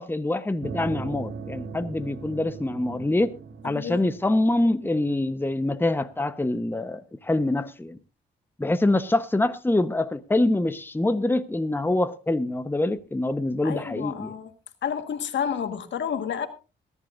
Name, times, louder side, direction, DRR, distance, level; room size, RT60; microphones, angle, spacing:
voice 1, 0.0-3.3 3.6-8.0 8.6-14.3, left 2 dB, 10° left, 1.0 m, -25 dB
sound 1, 0.6-5.5, right 5 dB, 65° right, 1.4 m, -39 dB
voice 2, 3.6-4.0 13.6-14.5 14.8-16.5, left 8 dB, 70° left, 1.7 m, -30 dB
22.0 x 11.0 x 2.6 m
cardioid pair, 65°, 19 cm